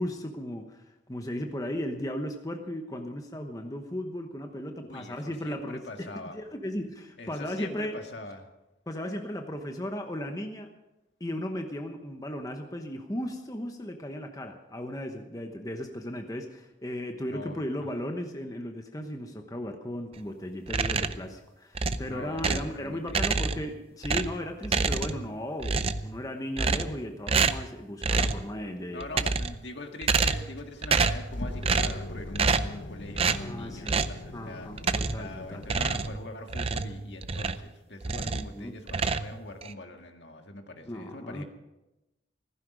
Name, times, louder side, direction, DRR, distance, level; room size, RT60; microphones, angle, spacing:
voice 1, 0.0-6.1 6.3-8.0 8.9-10.7 11.2-29.3 33.3-34.0 34.3-35.7 38.2-38.8 40.9-41.4, left 1 dB, 20° left, 4 dB, 1.0 m, -36 dB
voice 2, 4.9-6.4 7.2-8.5 17.2-17.9 22.0-23.7 28.9-34.7 35.2-41.4, left 2 dB, 65° left, 4 dB, 1.8 m, -43 dB
sound 1, 20.7-21.3 21.7-22.7 23.1-23.7 24.0-25.3 25.6-26.1 26.6-27.0 27.3-27.7 28.0-28.4 29.0-29.6 30.0-30.6 30.8-31.3 31.6-32.0 32.3-32.8 33.2-33.4 33.9-34.2 34.8-35.3 35.6-37.7 38.0-38.5 38.9-39.7, right 4 dB, 30° right, 0.5 m, -27 dB
sound 2, 30.6-36.1, left 1 dB, 85° left, 1.4 m, -41 dB
15.5 x 15.0 x 5.1 m, 0.99 s
head